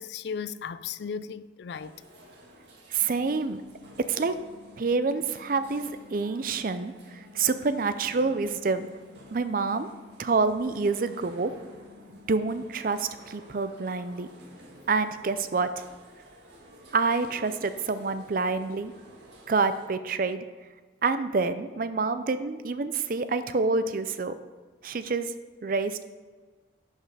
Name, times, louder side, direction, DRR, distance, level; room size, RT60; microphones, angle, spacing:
voice 1, 0.0-2.0, left 6 dB, 65° left, 0.3 m, -36 dB
sound 1, 1.7-19.9, equal, 70° right, 1.7 m, -53 dB
voice 2, 2.9-3.6 4.0-4.3 4.8-8.9 9.3-9.9 10.2-11.5 12.3-14.3 14.9-15.9 16.9-18.9 19.5-20.4 21.0-24.3 24.8-25.3 25.6-26.0, right 4 dB, 50° right, 0.5 m, -27 dB
sound 2, 3.0-13.0, left 5 dB, 25° left, 3.1 m, -53 dB
11.0 x 5.3 x 4.8 m
head